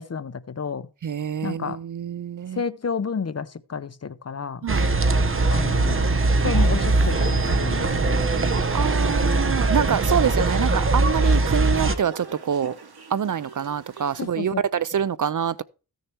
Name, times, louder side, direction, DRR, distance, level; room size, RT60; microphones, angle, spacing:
voice 1, 0.0-0.9 1.4-1.8 2.5-4.7 5.5-6.0 6.4-8.3 14.2-14.6 14.9-15.0, left 6 dB, 40° left, 0.7 m, -31 dB
voice 2, 1.0-2.6 4.6-4.9 8.7-12.7 13.1-15.6, right 8 dB, 50° right, 0.5 m, -26 dB
sound 1, 4.7-12.0, right 2 dB, 30° right, 0.9 m, -21 dB
sound 2, 5.2-14.3, right 4 dB, 65° right, 2.2 m, -39 dB
15.0 x 6.6 x 4.5 m
wide cardioid pair, 130°, 41 cm